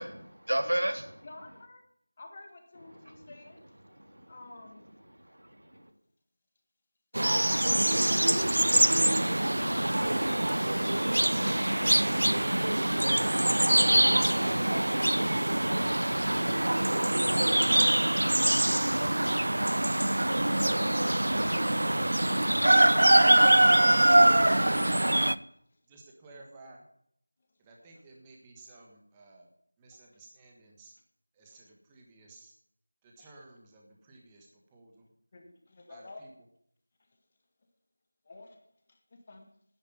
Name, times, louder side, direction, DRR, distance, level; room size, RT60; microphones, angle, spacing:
voice 1, 0.0-1.1 3.1-3.2 3.8-4.3 5.2-5.9, right 1 dB, 85° right, 5 dB, 2.6 m, -33 dB
voice 2, 1.2-1.8 2.2-3.6 4.3-4.9 9.6-10.1 10.4-12.1 20.6-21.1 29.9-30.0 31.5-31.6 35.3-36.2 38.3-38.6 38.9-39.0 39.3-39.5, left 2 dB, 25° left, 3 dB, 1.7 m, -49 dB
sound 1, 7.1-25.4, right 1 dB, 70° right, 0.6 m, -24 dB
voice 3, 25.9-26.8 27.6-29.5 29.8-30.9 31.3-32.5 33.0-35.1 35.9-36.3, right 2 dB, 10° right, -1 dB, 1.5 m, -53 dB
9.9 x 9.7 x 9.4 m, 0.71 s
figure-of-eight pair, 170°, 0 cm